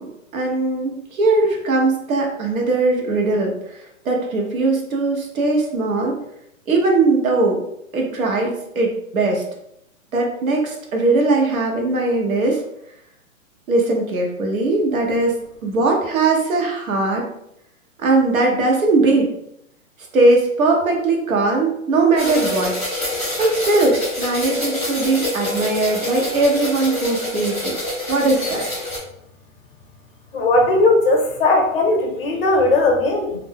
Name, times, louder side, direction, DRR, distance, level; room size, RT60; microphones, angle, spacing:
voice 1, 0.0-6.2 6.7-7.6 7.9-9.4 10.1-12.6 13.7-15.4 15.6-17.3 18.0-19.3 20.1-22.8 23.4-27.8 28.1-28.6, right 2 dB, 80° right, 1 dB, 1.0 m, -19 dB
sound 1, 22.2-29.0, left 1 dB, 10° right, 0.7 m, -26 dB
voice 2, 30.3-33.3, left 2 dB, 45° left, 1 dB, 0.7 m, -17 dB
2.5 x 2.1 x 3.6 m, 0.77 s
hypercardioid pair, 170°, 41 cm